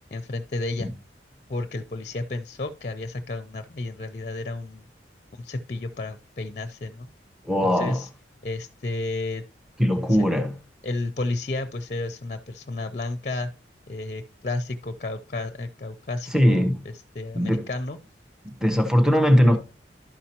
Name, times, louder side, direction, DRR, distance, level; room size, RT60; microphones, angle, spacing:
voice 1, 0.1-0.9 1.5-4.9 5.4-7.1 7.6-8.1 8.4-9.4 10.1-10.3 10.8-13.5 13.9-16.7 17.1-18.0, left 2 dB, 40° left, 0.5 m, -32 dB
voice 2, 7.4-8.0 9.8-10.6 16.3-16.8 17.3-17.7 18.4-19.6, equal, 5° right, 0.8 m, -20 dB
12.0 x 5.5 x 2.9 m
head